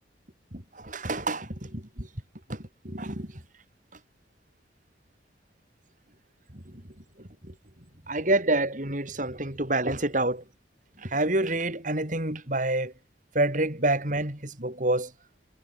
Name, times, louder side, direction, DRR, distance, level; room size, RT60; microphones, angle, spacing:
voice 1, 0.8-2.1 2.5-2.6 2.8-3.3 8.1-10.4 11.0-12.9 13.3-15.1, right 2 dB, 45° right, 5.4 m, -27 dB
head